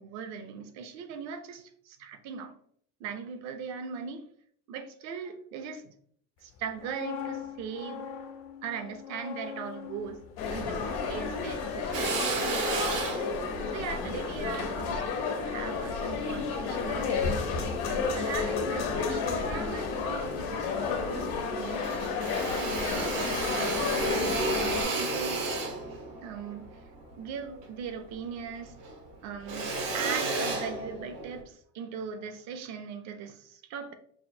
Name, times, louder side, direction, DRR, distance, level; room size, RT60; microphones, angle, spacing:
voice 1, 0.0-2.5 3.0-4.3 4.7-5.9 6.4-8.1 8.6-10.2 10.5-13.1 13.7-15.1 15.4-21.8 22.6-25.4 26.2-26.7 27.2-28.8 29.2-33.9, right 6 dB, 50° right, 0.6 m, -40 dB
sound 1, 6.6-12.5 12.8-13.0, left 7 dB, 40° left, 0.4 m, -43 dB
sound 2, 10.4-24.8, left 5 dB, 85° left, 1.1 m, -31 dB
Drill, 11.9-16.5 17.0-18.2 18.7-19.6 20.0-20.1 20.3-21.3 21.6-28.3 28.5-31.4, right 2 dB, 80° right, 1.3 m, -33 dB
5.6 x 2.6 x 2.7 m
cardioid pair, 175°, 35 cm